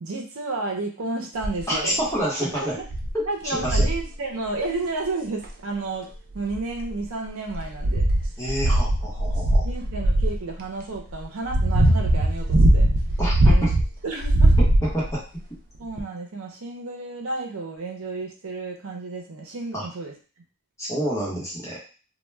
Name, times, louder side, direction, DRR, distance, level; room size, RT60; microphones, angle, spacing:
voice 1, 0.0-2.0 2.8-2.9 3.3-8.1 9.2-9.3 9.6-12.9 13.4-13.7 14.0-14.5 15.8-20.1, right 3 dB, 85° right, 2 dB, 0.6 m, -32 dB
sound 1, 1.4-1.7 2.3-2.4 2.9-3.1 3.6-4.0 5.4-5.5 6.3-7.0 7.5-10.4 11.1-13.9 14.2-15.1 16.0-16.1, right 1 dB, 45° right, 0.4 m, -20 dB
voice 2, 1.7-2.8 3.1-3.9 8.4-9.7 13.2-13.7 14.8-15.2 19.7-19.9 20.8-21.8, equal, 15° left, -6 dB, 0.9 m, -28 dB
2.2 x 2.1 x 3.2 m, 0.37 s
head